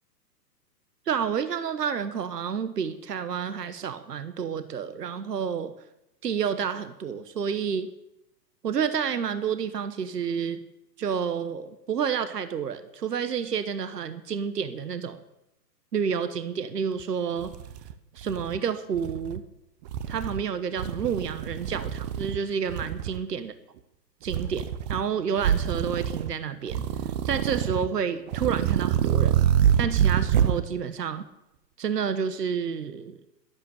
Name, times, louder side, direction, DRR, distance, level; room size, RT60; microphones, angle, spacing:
voice 1, 1.1-5.7 6.2-7.9 8.6-10.6 11.0-15.2 15.9-17.5 18.2-19.4 20.1-23.5 24.2-26.9 27.2-29.4 29.8-31.2 31.8-33.2, right 7 dB, 70° right, 12 dB, 1.2 m, -29 dB
sound 1, 17.0-17.1 17.4-18.6 18.9-19.4 19.9-20.4 20.8-22.4 22.7-23.2 24.3-25.0 25.4-26.3 26.7-27.9 28.3-30.6, right 9 dB, 25° right, 0.7 m, -26 dB
12.0 x 11.5 x 6.8 m, 0.91 s
figure-of-eight pair, 115°, 50 cm